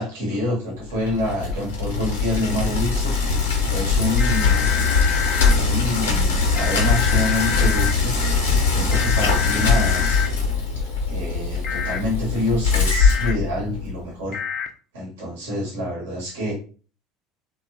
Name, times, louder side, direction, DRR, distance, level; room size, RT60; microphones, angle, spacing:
voice 1, 0.0-4.8 5.5-8.1 8.7-10.3 11.1-14.4 14.9-16.5, left 1 dB, 80° right, -3 dB, 0.9 m, -27 dB
Bicycle, 0.9-14.0, left 4 dB, 80° left, 0.7 m, -21 dB
sound 1, 4.2-5.5 6.6-7.9 8.9-10.3 11.6-12.0 13.0-13.3 14.3-14.7, left 8 dB, 50° left, 0.4 m, -27 dB
2.6 x 2.2 x 2.5 m, 0.39 s
hypercardioid pair, 75°, 0 cm